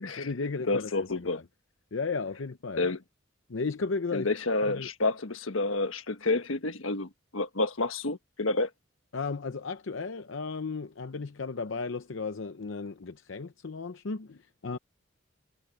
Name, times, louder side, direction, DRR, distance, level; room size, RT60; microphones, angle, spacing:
voice 1, 0.0-1.4 1.9-2.9 3.5-4.3 4.7-4.9 9.1-14.8, left 4 dB, 70° left, 0.7 m, -34 dB
voice 2, 0.7-1.4 2.8-3.0 4.1-8.7, left 2 dB, 90° left, 1.4 m, -29 dB
head